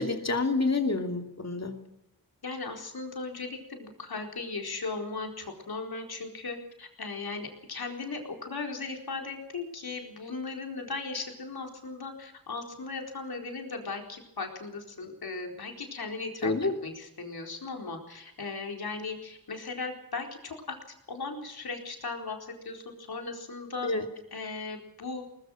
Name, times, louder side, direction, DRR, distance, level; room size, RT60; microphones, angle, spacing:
voice 1, 0.0-1.8 16.4-16.7 23.8-24.0, left 3 dB, 45° left, 5 dB, 2.8 m, -28 dB
voice 2, 2.4-20.8 21.1-23.9 24.3-25.2, left 3 dB, 85° left, 2 dB, 4.4 m, -37 dB
22.0 x 19.5 x 6.5 m, 0.86 s
wide cardioid pair, 85°, 36 cm